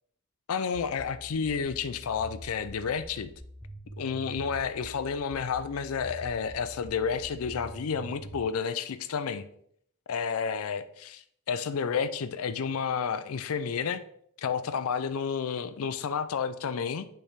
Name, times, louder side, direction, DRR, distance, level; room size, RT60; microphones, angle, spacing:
voice 1, 0.5-3.3 4.0-9.4 10.1-14.0 14.4-17.1, left 6 dB, 70° left, 12 dB, 0.4 m, -31 dB
sound 1, 0.7-8.4, equal, 10° right, 1.6 m, -45 dB
8.7 x 3.4 x 3.3 m, 0.68 s
head